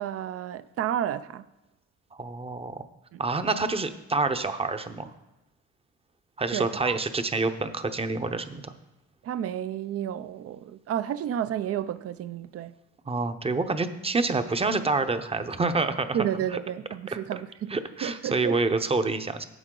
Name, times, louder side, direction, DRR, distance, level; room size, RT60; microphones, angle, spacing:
voice 1, 0.0-1.5 3.1-3.2 6.5-7.0 9.2-12.7 16.1-18.6, right 10 dB, 50° right, 0.5 m, -31 dB
voice 2, 2.2-2.8 3.2-5.1 6.4-8.7 13.1-16.2 17.7-19.4, right 3 dB, 20° right, 0.7 m, -27 dB
11.0 x 7.4 x 3.8 m
cardioid pair, 90°, 30 cm